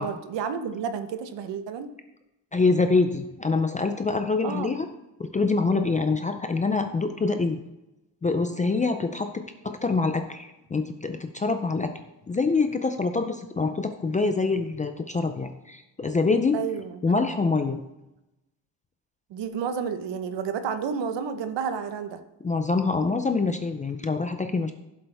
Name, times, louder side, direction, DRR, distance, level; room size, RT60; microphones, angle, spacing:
voice 1, 0.0-1.9 4.4-4.7 16.5-16.9 19.3-22.2, right 7 dB, 70° right, 9 dB, 1.1 m, -31 dB
voice 2, 2.5-4.9 5.2-7.6 8.2-11.9 12.3-16.6 17.0-17.8 22.4-24.7, left 3 dB, 20° left, 7 dB, 0.3 m, -25 dB
15.5 x 7.8 x 3.5 m, 0.94 s
cardioid pair, 175°, 45 cm